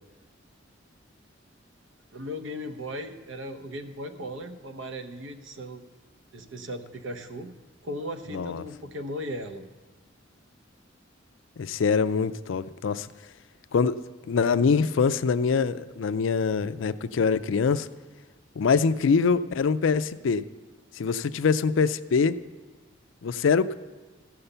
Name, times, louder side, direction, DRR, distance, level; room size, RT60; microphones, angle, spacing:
voice 1, 2.1-5.8 6.3-7.5 7.8-9.7, equal, 85° right, 8 dB, 0.9 m, -37 dB
voice 2, 8.3-8.6 11.6-13.1 13.7-14.0 14.3-17.9 18.6-20.4 21.0-22.4 23.2-23.7, left 5 dB, 85° left, 14 dB, 0.4 m, -24 dB
14.5 x 5.7 x 6.7 m, 1.3 s
head